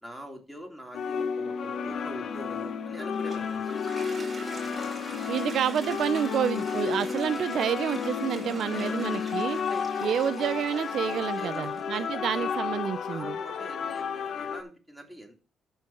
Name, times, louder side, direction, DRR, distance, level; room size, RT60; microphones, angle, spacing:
voice 1, 0.0-3.8 8.4-9.9 11.4-12.5 13.1-15.4, equal, ahead, 2 dB, 3.2 m, -44 dB
sound 1, 0.9-14.6, left 6 dB, 60° left, 1.2 m, -32 dB
Toilet flush, 2.9-13.2, right 2 dB, 20° right, 4.7 m, -45 dB
voice 2, 5.3-9.6 10.0-13.4, right 9 dB, 70° right, 15 dB, 0.5 m, -29 dB
14.0 x 4.6 x 4.5 m, 0.34 s
cardioid pair, 90°, 0 cm